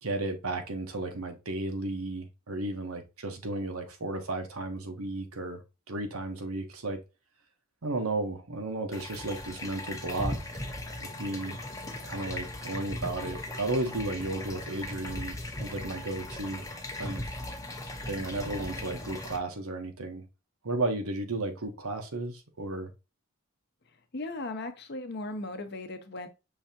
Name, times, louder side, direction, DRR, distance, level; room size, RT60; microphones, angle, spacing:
voice 1, 0.0-5.6 5.9-7.0 7.8-10.3 11.0-11.6 12.0-16.7 16.9-17.2 18.1-20.2 20.6-22.9, right 2 dB, 90° right, 1.0 m, -34 dB
sound 1, 8.9-19.4, left 1 dB, 15° left, 0.6 m, -38 dB
voice 2, 24.1-26.3, left 2 dB, 50° left, 0.7 m, -37 dB
5.6 x 3.4 x 2.8 m
head